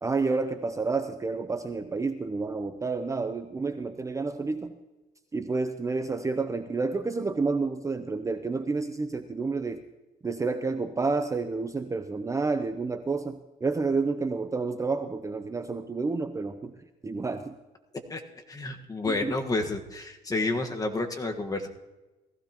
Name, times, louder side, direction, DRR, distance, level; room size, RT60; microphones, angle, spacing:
voice 1, 0.0-4.8 5.3-9.8 10.2-16.7 17.0-17.6 19.1-19.4, right 4 dB, 20° right, 8 dB, 0.7 m, -29 dB
voice 2, 18.5-21.7, left 2 dB, 20° left, 4 dB, 1.5 m, -30 dB
18.5 x 15.0 x 3.0 m, 1.1 s
cardioid pair, 110°, 17 cm